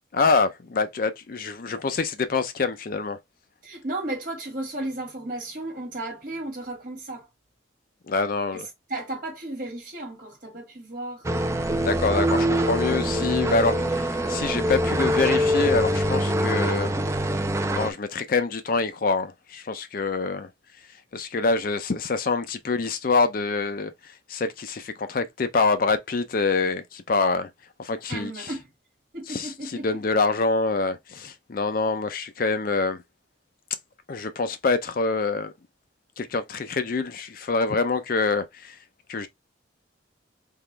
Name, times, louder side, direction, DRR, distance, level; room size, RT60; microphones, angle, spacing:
voice 1, 0.1-3.2 8.1-8.7 11.8-16.9 17.7-20.5 21.1-23.9 24.3-27.5 27.8-28.5 29.3-33.0 34.1-35.5 36.2-38.8 39.1-39.3, left 4 dB, 45° left, 0.5 m, -25 dB
voice 2, 3.6-7.3 8.5-8.6 8.9-11.5 28.1-28.7 29.1-30.0, right 2 dB, 45° right, 1.8 m, -34 dB
sound 1, 11.2-17.9, equal, 15° right, 0.4 m, -24 dB
3.7 x 2.9 x 3.3 m
head